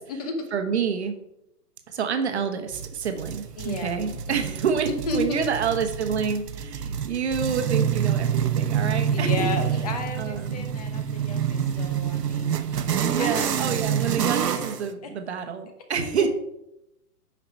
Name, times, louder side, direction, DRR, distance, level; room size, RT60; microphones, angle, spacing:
voice 1, 0.5-1.1 1.9-9.5 10.2-10.7 13.1-16.3, right 6 dB, 45° right, 6 dB, 1.3 m, -28 dB
sound 1, 2.7-14.8, right 8 dB, 85° right, 1.0 m, -27 dB
voice 2, 3.6-5.5 8.8-12.6 13.1-14.8 15.0-15.1 15.9-16.3, left 3 dB, 25° left, 5 dB, 1.1 m, -34 dB
9.5 x 5.8 x 4.6 m, 0.84 s
hypercardioid pair, 170°, 47 cm